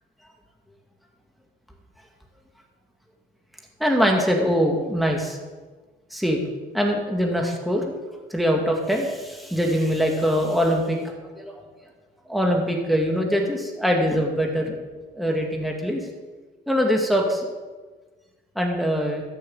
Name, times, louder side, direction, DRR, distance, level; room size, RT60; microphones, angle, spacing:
voice 1, 3.8-5.4 6.1-6.4 6.7-7.9 8.3-11.6 12.3-14.8 15.1-16.1 16.7-17.5 18.6-19.2, equal, ahead, 0 dB, 2.1 m, -23 dB
14.0 x 6.3 x 7.8 m, 1.4 s
cardioid pair, 90°, 20 cm